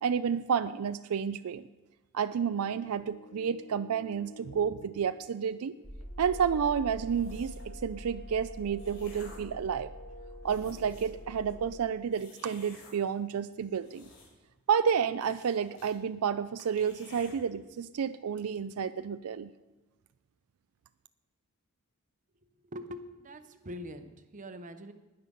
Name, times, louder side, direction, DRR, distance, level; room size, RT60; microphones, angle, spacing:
voice 1, 0.0-1.6 2.1-5.8 6.2-9.9 10.4-14.0 14.7-19.5, right 7 dB, 75° right, 13 dB, 0.4 m, -30 dB
sound 1, 2.4-11.8, left 1 dB, 80° left, 1.6 m, -52 dB
sound 2, 5.8-11.8, equal, 5° left, 1.3 m, -45 dB
sound 3, 7.1-7.7 8.4-9.6 10.1-10.2 10.4-11.2 12.1-12.9 13.6-14.5 14.8-14.9 15.2-15.9 16.3-16.4 16.6-17.3, left 3 dB, 55° left, 3.9 m, -53 dB
voice 2, 22.6-24.9, equal, 35° right, 9 dB, 0.8 m, -43 dB
20.0 x 6.7 x 5.3 m, 1.1 s
head